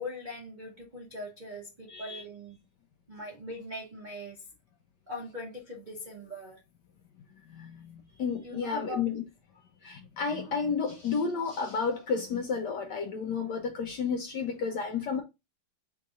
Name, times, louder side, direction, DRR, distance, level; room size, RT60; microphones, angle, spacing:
voice 1, 0.0-2.6 3.1-4.4 5.1-6.6 8.4-9.2, left 1 dB, 80° right, 0.4 m, -41 dB
voice 2, 1.9-2.2 7.4-9.2 9.8-15.2, left 5 dB, 75° left, 1.0 m, -32 dB
3.7 x 2.7 x 4.7 m
omnidirectional pair, 2.4 m